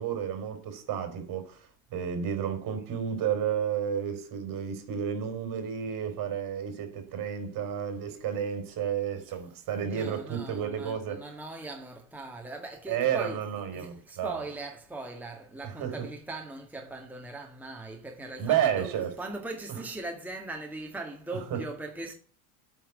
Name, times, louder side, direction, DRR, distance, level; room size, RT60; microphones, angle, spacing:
voice 1, 0.0-11.2 12.9-14.4 15.6-16.0 18.4-19.1 21.5-21.6, right 8 dB, 50° right, 4.0 m, -31 dB
voice 2, 9.8-22.1, right 2 dB, 5° right, 1.8 m, -40 dB
9.2 x 6.0 x 8.3 m
supercardioid pair, 110°, 42 cm